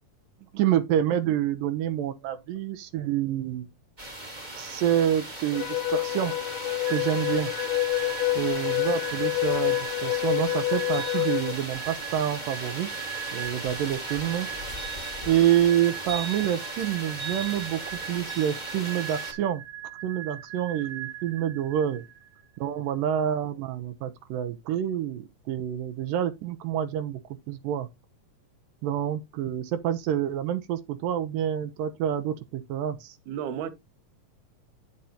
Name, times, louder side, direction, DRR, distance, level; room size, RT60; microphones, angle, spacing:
voice 1, 0.6-3.7 4.5-6.4 6.9-7.5 8.4-12.9 13.3-14.5 15.3-19.6 20.0-22.0 22.6-27.2 27.5-27.9 28.8-33.2, right 10 dB, 85° right, 2.6 m, -27 dB
sound 1, 4.0-19.3, right 1 dB, 15° right, 1.6 m, -37 dB
sound 2, 5.5-11.5, left 19 dB, 80° left, 1.4 m, -27 dB
sound 3, 6.8-22.4, right 11 dB, 50° right, 1.9 m, -40 dB
voice 2, 33.3-33.7, right 9 dB, 70° right, 2.3 m, -34 dB
9.1 x 7.6 x 2.8 m
omnidirectional pair, 3.8 m